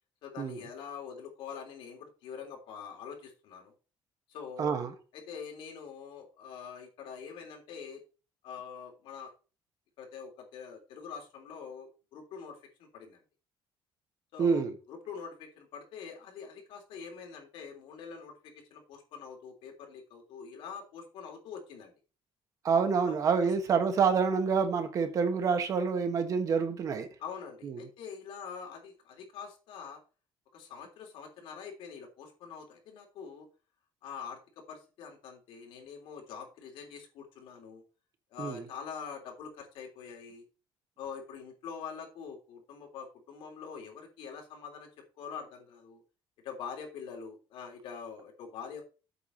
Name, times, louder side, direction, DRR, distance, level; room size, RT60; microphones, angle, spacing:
voice 1, 0.2-3.7 4.3-4.7 5.1-8.0 8.4-9.3 10.0-13.2 14.3-21.9 23.1-23.5 27.2-30.0 30.5-33.5 34.0-34.4 34.7-37.8 38.3-40.4 41.0-44.9 45.2-46.0 46.4-48.8, left 6 dB, 70° left, 3.5 m, -44 dB
voice 2, 4.6-4.9 14.4-14.7 22.6-27.1 27.6-27.8 38.4-38.6, right 5 dB, 40° right, 1.4 m, -27 dB
8.3 x 4.8 x 7.2 m
cardioid pair, 175°, 9 cm